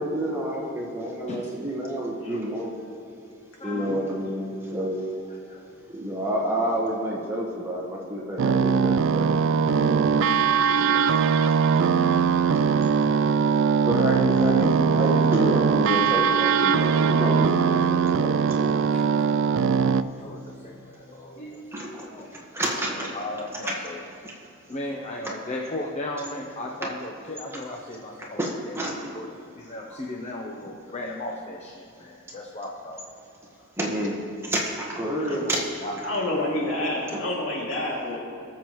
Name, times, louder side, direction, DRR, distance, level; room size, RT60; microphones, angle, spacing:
voice 1, 0.0-2.7 3.6-5.0 5.9-9.4 9.9-11.0 13.9-18.7 19.2-19.3 21.7-21.9 22.5-23.1 23.7-23.8 28.4-29.1 29.9-30.0 33.8-34.1 34.4-35.6, equal, 15° right, -3 dB, 1.4 m, -29 dB
voice 2, 3.6-4.0 23.6-23.8 35.2-35.4 36.0-38.2, left 1 dB, 75° left, -3 dB, 2.5 m, -29 dB
sound 1, 8.4-20.0, right 6 dB, 65° right, 0.3 m, -21 dB
voice 3, 10.6-11.1 11.9-12.2 12.5-12.9 15.2-15.7 16.9-17.0 17.9-18.0 18.6-19.3 20.2-22.3 22.9-24.0 24.7-28.4 28.7-29.3 29.6-33.0 35.3-35.5 35.8-36.4, left 1 dB, 35° left, -1 dB, 0.8 m, -37 dB
18.5 x 7.4 x 3.1 m, 2.7 s
head